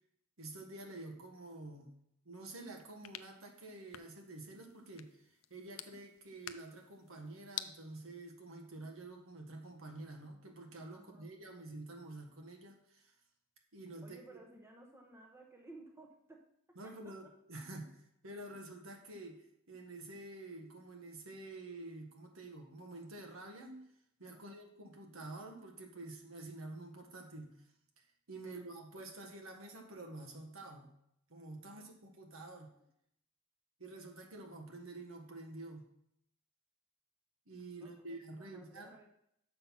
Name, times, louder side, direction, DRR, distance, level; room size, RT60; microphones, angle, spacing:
voice 1, 0.4-1.9 2.2-5.2 5.5-13.1 13.7-14.4 16.7-23.8 24.2-27.6 28.0-30.9 31.3-32.7 33.8-35.9 37.5-38.9, right 2 dB, 75° right, 3 dB, 1.5 m, -49 dB
sound 1, 2.5-7.7, left 12 dB, 70° left, 0.5 m, -50 dB
voice 2, 10.9-11.3 14.0-17.1 24.3-24.6 28.4-28.6 31.7-31.9 37.7-39.1, right 2 dB, 10° right, 1 dB, 0.9 m, -57 dB
6.8 x 5.7 x 5.7 m, 0.73 s
head